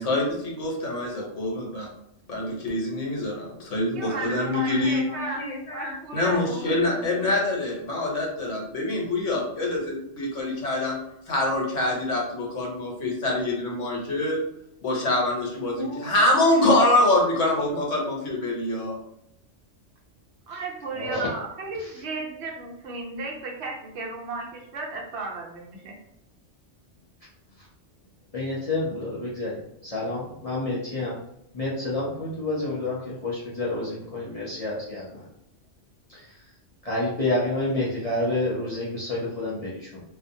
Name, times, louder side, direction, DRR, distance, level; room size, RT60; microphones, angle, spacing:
voice 1, 0.0-1.9 2.3-11.0 11.3-14.4 14.8-19.0, left 2 dB, 80° left, -2 dB, 1.1 m, -25 dB
voice 2, 3.9-5.4 5.7-6.7 20.5-25.9, right 3 dB, 65° right, -1 dB, 0.9 m, -34 dB
voice 3, 20.9-21.3 28.3-31.2 31.5-35.2 36.1-36.2 36.8-40.0, left 2 dB, 45° left, -6 dB, 0.5 m, -29 dB
2.5 x 2.1 x 2.6 m, 0.80 s
omnidirectional pair, 1.3 m